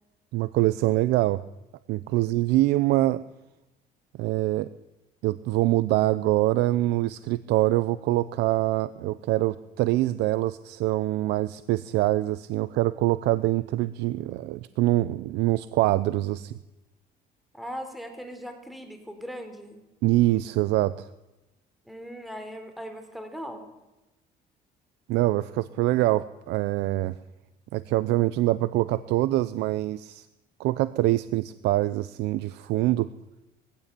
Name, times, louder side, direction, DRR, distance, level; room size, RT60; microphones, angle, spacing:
voice 1, 0.3-1.4 1.9-3.2 4.2-4.7 5.2-16.6 20.0-21.1 25.1-27.2 27.7-30.3 30.6-33.1, right 16 dB, 90° right, 15 dB, 0.8 m, -24 dB
voice 2, 17.5-19.8 21.9-23.6, equal, ahead, 6 dB, 3.9 m, -39 dB
22.0 x 16.0 x 9.1 m, 1.0 s
cardioid pair, 110°, 17 cm